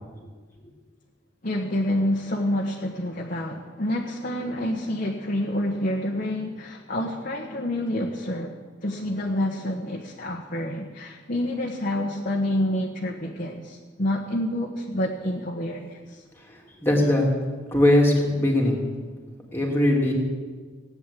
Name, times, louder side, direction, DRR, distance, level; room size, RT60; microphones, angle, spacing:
voice 1, 1.4-16.2, left 1 dB, 45° left, 0 dB, 1.3 m, -28 dB
voice 2, 16.5-17.3 17.7-18.8 19.5-20.1, left 1 dB, 10° left, -1 dB, 2.9 m, -20 dB
17.0 x 9.8 x 8.5 m, 1.5 s
head